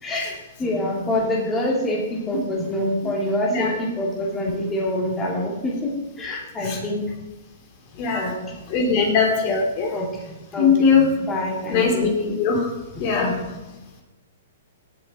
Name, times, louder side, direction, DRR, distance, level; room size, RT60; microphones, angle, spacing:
voice 1, 0.0-5.9 6.2-7.0 8.1-8.3 9.9-10.9 11.3-12.1 13.1-13.4, left 1 dB, 15° left, -3 dB, 3.1 m, -26 dB
voice 2, 8.0-8.3 8.7-9.9 10.6-11.1 11.7-12.7 13.0-13.3, left 5 dB, 40° left, 1 dB, 3.1 m, -20 dB
17.5 x 7.5 x 4.5 m, 1.1 s
hypercardioid pair, 145°, 0 cm